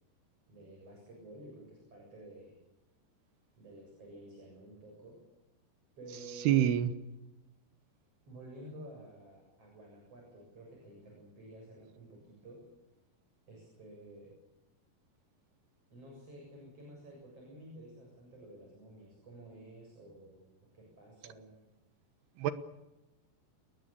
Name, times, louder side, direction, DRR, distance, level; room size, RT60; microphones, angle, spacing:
voice 1, 0.5-2.6 3.6-5.2 6.0-6.8 8.3-12.7 13.5-14.3 15.9-20.5 20.7-21.6, right 1 dB, 35° right, 0 dB, 8.3 m, -51 dB
voice 2, 6.5-6.9 22.4-22.5, right 11 dB, 75° right, 11 dB, 3.1 m, -25 dB
29.0 x 19.5 x 7.0 m, 1.0 s
omnidirectional pair, 4.8 m